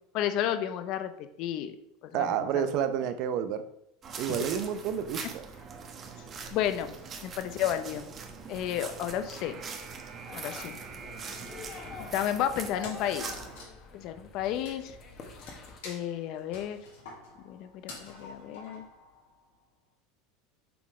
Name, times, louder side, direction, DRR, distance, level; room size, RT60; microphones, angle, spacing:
voice 1, 0.1-1.8 2.0-2.5 4.3-4.4 6.5-6.9 7.2-8.1 8.5-9.6 10.3-10.8 12.0-13.3 13.9-15.0 15.8-16.8 17.4-18.9, left 10 dB, 55° left, 9 dB, 0.7 m, -32 dB
voice 2, 2.1-3.6 4.2-5.5, right 9 dB, 55° right, 10 dB, 0.7 m, -30 dB
sound 1, 4.0-13.7, right 5 dB, 35° right, 1.1 m, -42 dB
sound 2, 10.3-15.8, left 5 dB, 35° left, 1.4 m, -46 dB
Wood, 12.8-19.5, left 3 dB, 85° left, 2.8 m, -49 dB
6.9 x 3.8 x 5.0 m, 0.76 s
supercardioid pair, 115°, 0 cm